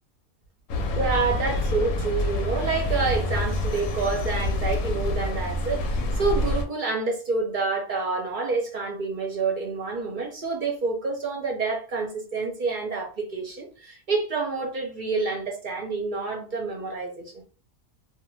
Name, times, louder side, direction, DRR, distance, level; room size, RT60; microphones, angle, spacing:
sound 1, 0.7-6.7, left 1 dB, 70° left, 0.9 m, -27 dB
voice 1, 0.7-17.3, right 4 dB, 55° right, 0.6 m, -28 dB
2.4 x 2.2 x 3.0 m
omnidirectional pair, 1.4 m